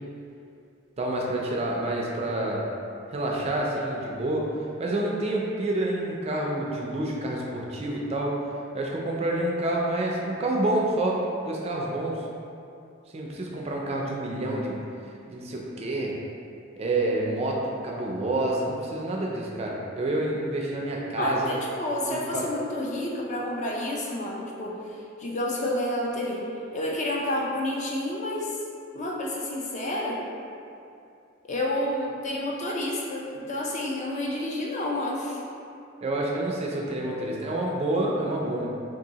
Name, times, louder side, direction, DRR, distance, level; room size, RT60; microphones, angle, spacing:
voice 1, 1.0-2.7 3.1-4.5 4.8-8.3 8.7-11.2 11.4-12.2 13.1-14.8 15.3-16.1 16.8-21.5 22.0-22.5 36.0-38.7, right 1 dB, 30° right, -2 dB, 0.4 m, -28 dB
voice 2, 21.2-24.8 25.2-26.4 26.7-28.6 28.9-30.2 31.5-35.4, left 1 dB, 35° left, -3 dB, 0.4 m, -29 dB
2.8 x 2.6 x 3.9 m, 2.6 s
head